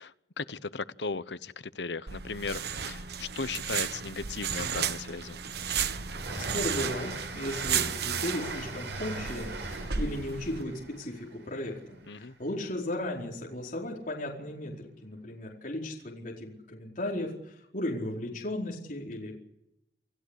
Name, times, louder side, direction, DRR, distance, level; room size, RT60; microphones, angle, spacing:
voice 1, 0.0-5.4 12.1-12.3, left 4 dB, 80° left, 14 dB, 1.0 m, -37 dB
sound 1, 2.1-10.6, right 7 dB, 65° right, 1.2 m, -34 dB
Train, 5.0-12.3, right 3 dB, 85° right, 6.8 m, -41 dB
voice 2, 6.5-19.4, left 1 dB, 50° left, -2 dB, 4.6 m, -36 dB
28.5 x 15.5 x 8.3 m, 0.84 s
head